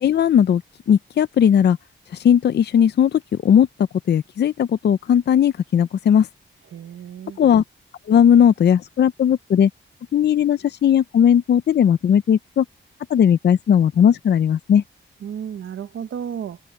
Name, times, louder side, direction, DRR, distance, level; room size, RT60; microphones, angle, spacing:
voice 1, 0.0-0.6 0.9-1.8 2.1-3.7 4.1-6.3 7.4-7.6 8.1-9.7 10.1-12.7 13.1-14.8, left 8 dB, 55° left, 0.5 m, -17 dB
voice 2, 6.7-7.4 15.2-16.6, right 8 dB, 75° right, 0.8 m, -32 dB
wide cardioid pair, 150°, 20 cm